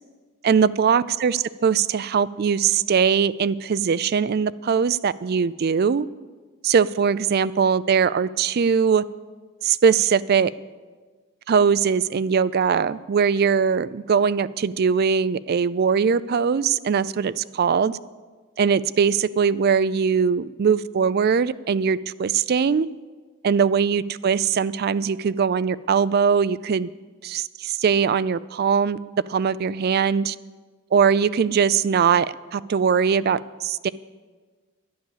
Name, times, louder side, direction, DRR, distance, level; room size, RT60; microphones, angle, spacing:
voice 1, 0.4-6.1 6.6-9.0 9.6-10.5 11.5-18.0 18.6-22.9 23.4-26.9 27.2-29.0 29.3-30.4 30.9-32.3 32.5-33.9, right 6 dB, 50° right, 16 dB, 0.4 m, -21 dB
11.5 x 9.8 x 7.3 m, 1.4 s
head